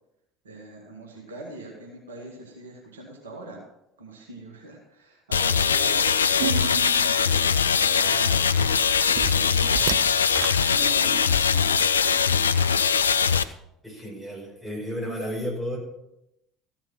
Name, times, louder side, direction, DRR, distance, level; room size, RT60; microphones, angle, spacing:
voice 1, 0.4-3.6 4.0-8.8 9.1-9.8 10.7-12.4, right 1 dB, 75° right, -1 dB, 2.0 m, -42 dB
sound 1, 5.3-13.4, left 6 dB, 75° left, 0.3 m, -21 dB
sound 2, 6.4-11.4, right 11 dB, 55° right, 0.5 m, -34 dB
voice 2, 13.8-15.8, equal, ahead, -3 dB, 5.2 m, -32 dB
14.5 x 6.0 x 5.7 m, 0.84 s
figure-of-eight pair, 65°, 0 cm